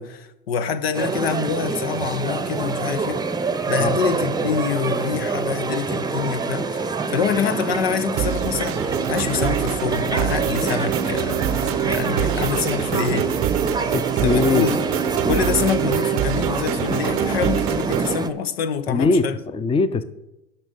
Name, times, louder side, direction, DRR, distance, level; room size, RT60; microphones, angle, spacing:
voice 1, 0.0-3.2 3.7-13.3 14.2-14.8 15.3-19.3, left 7 dB, 85° left, 0.8 m, -26 dB
sound 1, 0.9-18.3, right 4 dB, 15° right, 0.7 m, -26 dB
sound 2, 8.2-18.2, right 13 dB, 50° right, 0.6 m, -25 dB
voice 2, 13.9-14.7 18.9-20.0, left 3 dB, 20° left, 0.6 m, -21 dB
11.5 x 5.8 x 5.3 m
hypercardioid pair, 85°, 30 cm